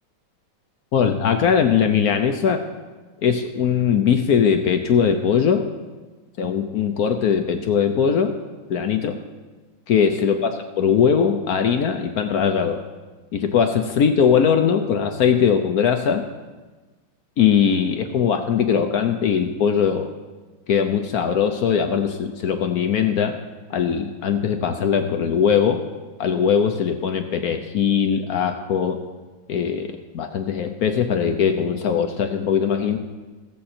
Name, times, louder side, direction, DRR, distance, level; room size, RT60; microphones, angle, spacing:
voice 1, 0.9-2.6 3.2-5.7 6.4-8.3 8.7-9.2 9.9-12.8 13.3-16.2 17.4-20.1 20.7-23.4 23.7-25.8 26.2-29.0 29.5-33.0, left 7 dB, 65° left, 6 dB, 0.9 m, -20 dB
16.5 x 7.6 x 4.3 m, 1.3 s
omnidirectional pair, 2.2 m